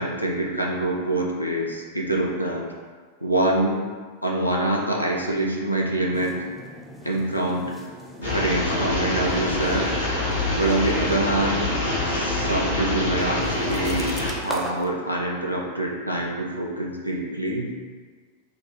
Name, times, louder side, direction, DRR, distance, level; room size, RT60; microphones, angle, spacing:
voice 1, 0.0-2.7 3.2-3.8 4.2-6.3 7.0-7.7 8.2-9.9 10.6-11.7 12.0-14.1 14.4-17.7, right 1 dB, 90° left, -2 dB, 0.5 m, -25 dB
sound 1, 6.1-14.9, equal, 5° left, 0.4 m, -40 dB
sound 2, 8.2-14.3, left 2 dB, 70° left, 1.0 m, -25 dB
2.8 x 2.4 x 3.7 m, 1.5 s
figure-of-eight pair, 90°, 0 cm